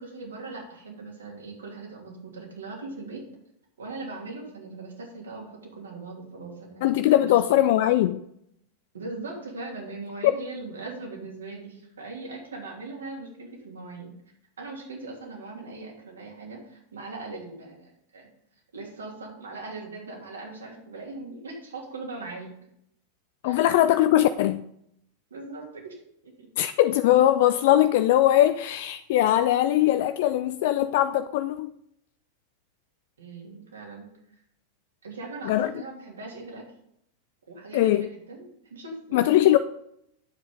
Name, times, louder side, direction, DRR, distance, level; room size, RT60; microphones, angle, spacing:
voice 1, 0.0-3.2 3.8-7.7 8.9-14.1 14.6-18.3 18.7-22.5 23.4-23.6 25.3-26.5 33.2-34.1 35.0-36.6 37.5-39.3, right 3 dB, 70° right, 2.9 m, -40 dB
voice 2, 6.8-8.2 10.2-10.3 23.4-24.6 26.6-31.7 35.4-35.7 37.7-38.1 39.1-39.6, left 13 dB, 50° left, 0.4 m, -21 dB
9.4 x 7.6 x 3.8 m
figure-of-eight pair, 90°, 0 cm